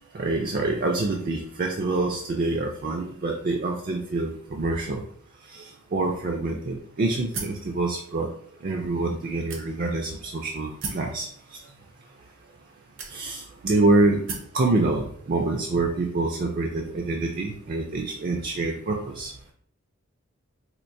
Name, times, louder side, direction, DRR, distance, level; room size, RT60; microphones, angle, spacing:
voice 1, 0.1-5.0 5.5-8.3 8.6-11.3 13.1-14.3 14.5-19.3, right 2 dB, 45° right, 2 dB, 0.4 m, -26 dB
sound 1, 7.3-7.7 8.5-8.6 9.5-10.0 10.8-11.1 12.1-12.2 13.0-13.5 14.3-14.6, right 4 dB, 70° right, 0.7 m, -35 dB
4.3 x 2.5 x 2.6 m, 0.62 s
head